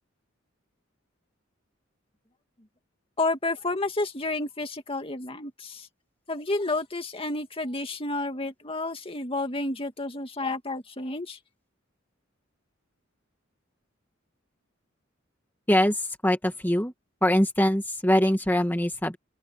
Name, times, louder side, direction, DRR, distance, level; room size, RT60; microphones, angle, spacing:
voice 1, 3.2-5.9 6.3-11.4, left 2 dB, 30° left, 2.2 m, -30 dB
voice 2, 15.7-16.9 17.2-19.2, left 1 dB, 10° left, 1.8 m, -23 dB
open air
head